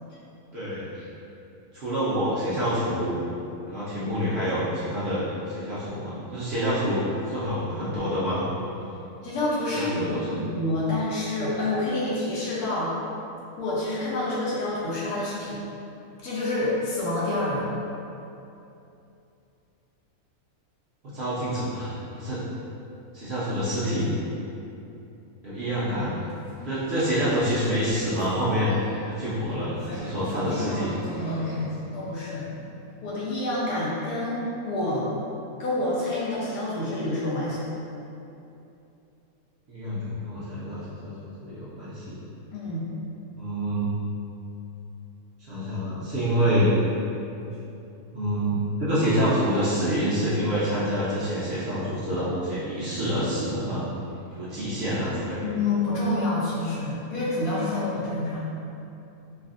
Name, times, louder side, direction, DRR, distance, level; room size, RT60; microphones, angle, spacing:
voice 1, 0.5-1.0 1.7-3.2 3.7-8.5 9.7-10.4 21.0-22.4 23.1-24.1 25.4-26.1 26.7-28.8 29.0-30.9 39.7-42.2 43.4-43.9 45.5-46.7 48.1-53.8 54.4-55.4, equal, 60° right, -11 dB, 0.7 m, -27 dB
voice 2, 8.9-12.9 13.6-15.6 16.2-17.7 30.6-32.5 33.0-35.1 35.6-37.6 42.5-42.8 55.4-58.4, left 2 dB, 75° left, -7 dB, 1.2 m, -28 dB
sound 1, 26.1-32.9, left 1 dB, 50° left, 0.9 m, -41 dB
3.3 x 2.4 x 2.4 m, 2.8 s
omnidirectional pair, 1.6 m